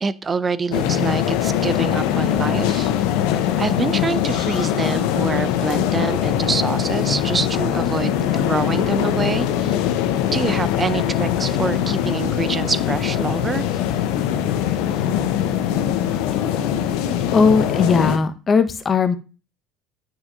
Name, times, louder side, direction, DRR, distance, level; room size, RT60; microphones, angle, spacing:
voice 1, 0.0-2.9 3.6-9.8 10.3-13.6, right 4 dB, 25° right, 17 dB, 0.6 m, -26 dB
sound 1, 0.7-18.2, left 10 dB, 65° left, 0.9 m, -22 dB
voice 2, 17.3-19.2, left 4 dB, 30° left, 10 dB, 1.2 m, -18 dB
9.6 x 7.6 x 2.7 m, 0.32 s
figure-of-eight pair, 65°, 0 cm